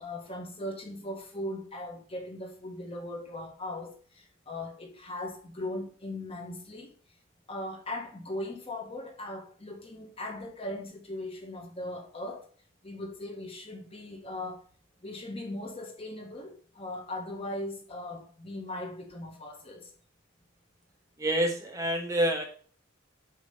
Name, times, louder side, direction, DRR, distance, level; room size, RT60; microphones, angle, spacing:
voice 1, 0.0-6.9 7.5-12.5 12.8-14.7 15.0-19.9, left 1 dB, 30° left, 1.0 m, -39 dB
voice 2, 21.2-22.4, right 1 dB, 15° right, 1.1 m, -27 dB
8.4 x 3.0 x 5.4 m
head